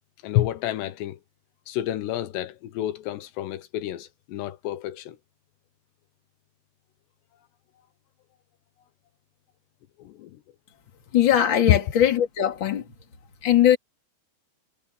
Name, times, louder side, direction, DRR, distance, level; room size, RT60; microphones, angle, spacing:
voice 1, 0.2-1.2 1.7-5.2 10.0-10.4 11.7-11.8, left 13 dB, 80° left, 3.1 m, -28 dB
voice 2, 11.1-12.8 13.4-13.8, left 10 dB, 30° left, 2.8 m, -20 dB
omnidirectional pair, 4.9 m